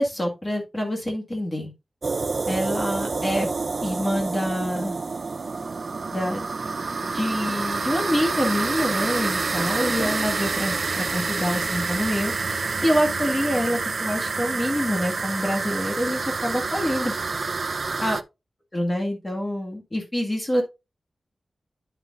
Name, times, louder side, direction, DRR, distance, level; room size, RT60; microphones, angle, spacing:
voice 1, 0.0-1.7 2.5-3.5 3.8-5.0 6.1-6.4 7.0-12.3 12.8-17.2 18.0-18.2 18.7-20.6, equal, 25° left, 1 dB, 1.8 m, -26 dB
sound 1, 2.0-18.2, right 4 dB, 55° right, 0.5 m, -28 dB
9.6 x 5.6 x 2.5 m, 0.24 s
wide cardioid pair, 85°, 0 cm